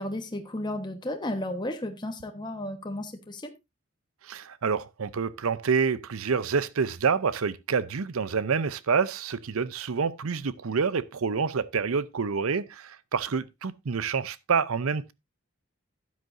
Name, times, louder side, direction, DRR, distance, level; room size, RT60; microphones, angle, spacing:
voice 1, 0.0-3.5, left 1 dB, 20° left, 1.2 m, -33 dB
voice 2, 4.2-15.1, right 5 dB, 85° right, 0.6 m, -27 dB
12.5 x 9.4 x 2.6 m
head